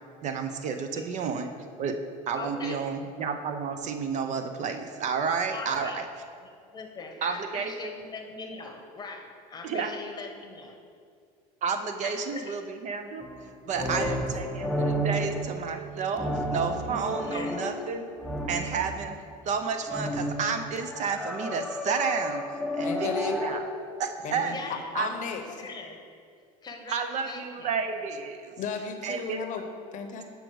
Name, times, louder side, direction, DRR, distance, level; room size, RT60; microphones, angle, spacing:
voice 1, 0.2-1.5 1.8-2.0 2.3-6.1 7.2-7.9 9.6-9.9 11.6-13.2 13.7-18.1 18.5-19.2 19.4-22.4 22.7-23.6 24.0-24.5 24.9-25.1 26.9-28.6 29.0-29.5, right 5 dB, 45° right, 7 dB, 0.6 m, -31 dB
voice 2, 2.3-2.9 5.5-6.0 6.4-10.7 12.0-12.5 17.2-17.5 24.4-24.9 25.6-26.0 26.6-27.7, left 3 dB, 25° left, 4 dB, 1.0 m, -41 dB
sound 1, 13.2-19.1 19.9-23.6, equal, ahead, 0.7 m, -32 dB
voice 3, 13.8-14.2 22.8-23.4 24.2-25.7 28.6-30.2, left 6 dB, 45° left, 6 dB, 0.8 m, -35 dB
7.5 x 5.2 x 4.6 m, 2.3 s
supercardioid pair, 105°, 18 cm